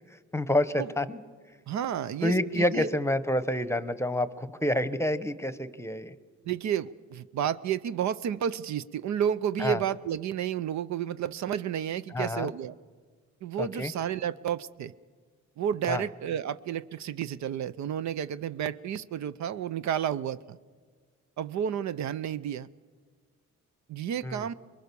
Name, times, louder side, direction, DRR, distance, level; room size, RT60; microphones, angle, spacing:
voice 1, 0.3-1.2 2.2-6.1 9.6-9.8 12.1-12.5 13.6-13.9 15.9-16.0 24.2-24.5, left 1 dB, 10° left, 14 dB, 0.9 m, -28 dB
voice 2, 1.7-2.9 6.5-12.8 13.4-14.9 15.6-20.6 21.4-22.7 23.9-24.5, right 9 dB, 65° right, 15 dB, 0.6 m, -31 dB
24.0 x 21.5 x 6.9 m, 1.5 s
cardioid pair, 90°, 30 cm